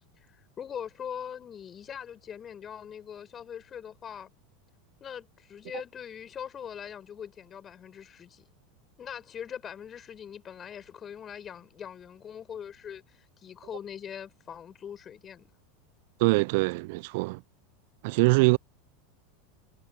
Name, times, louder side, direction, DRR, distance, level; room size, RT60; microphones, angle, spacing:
voice 1, 0.2-4.3 5.0-8.5 9.0-15.5, left 8 dB, 30° left, 6.6 m, -42 dB
voice 2, 16.2-17.4 18.0-18.6, right 27 dB, 60° right, 0.3 m, -23 dB
hypercardioid pair, 85°, 0 cm